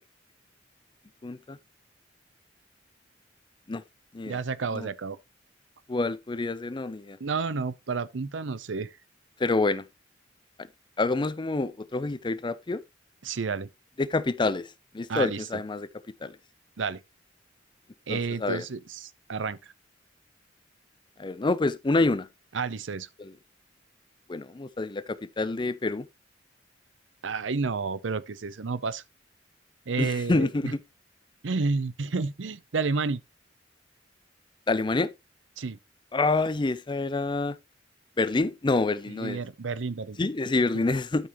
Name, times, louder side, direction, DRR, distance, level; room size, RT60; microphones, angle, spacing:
voice 1, 1.2-1.6 3.7-3.8 4.1-4.4 4.7-4.9 5.9-7.2 9.4-9.9 11.0-12.8 14.0-14.7 14.9-15.9 16.2-16.3 18.1-18.6 21.2-22.3 23.2-23.3 24.3-26.0 30.0-30.8 34.7-35.1 36.1-37.6 38.2-39.4 40.2-41.3, left 3 dB, 25° left, 0.5 m, -27 dB
voice 2, 4.3-5.2 7.2-8.9 13.2-13.7 15.1-15.6 16.8-17.0 18.1-19.6 22.5-23.1 27.2-29.0 29.9-30.7 31.4-33.2 35.6-35.8 39.1-40.2 40.7-40.9, right 4 dB, 85° right, 0.7 m, -30 dB
12.5 x 5.4 x 3.0 m
head